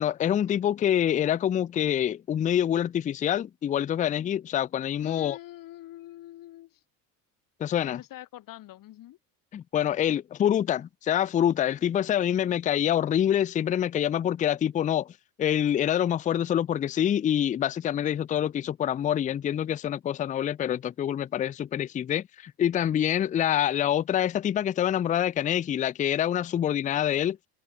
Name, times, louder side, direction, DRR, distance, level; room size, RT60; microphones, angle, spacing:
voice 1, 0.0-5.4 7.6-8.0 9.5-15.1 15.4-27.4, left 10 dB, 20° left, 0.4 m, -26 dB
voice 2, 5.0-6.8 7.8-9.2, left 14 dB, 60° left, 3.9 m, -44 dB
supercardioid pair, 100°, 38 cm